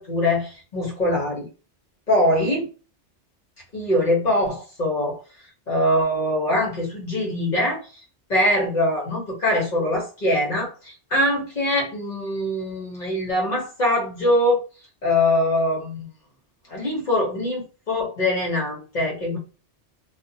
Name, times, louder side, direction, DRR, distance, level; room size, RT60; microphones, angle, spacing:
voice 1, 0.0-1.5 2.1-2.7 3.7-5.2 5.7-8.0 8.3-14.6 15.0-16.1 16.7-19.4, left 1 dB, 40° left, -2 dB, 1.1 m, -23 dB
2.6 x 2.1 x 2.7 m, 0.35 s
omnidirectional pair, 1.2 m